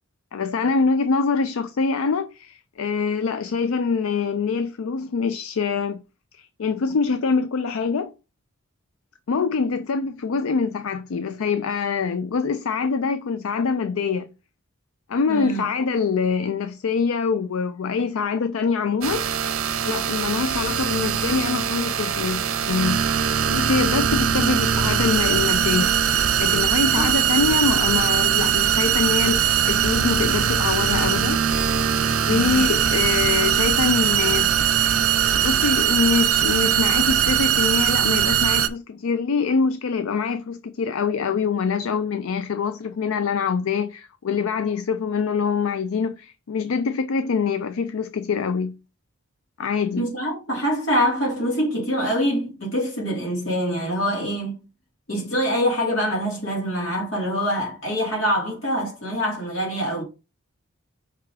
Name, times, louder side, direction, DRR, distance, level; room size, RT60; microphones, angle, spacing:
voice 1, 0.3-6.0 6.4-8.1 9.3-14.3 15.1-19.6 19.8-23.0 23.3-26.0 26.4-31.4 32.2-34.5 34.8-35.0 35.4-48.8 49.6-50.1, left 5 dB, 80° left, 0.4 m, -24 dB
voice 2, 15.3-15.7 26.9-27.0 32.2-32.7 50.0-54.6 55.1-60.0, equal, 60° left, 2.8 m, -25 dB
sound 1, 19.0-38.7, right 8 dB, 85° right, 0.6 m, -21 dB
5.6 x 3.6 x 4.7 m
head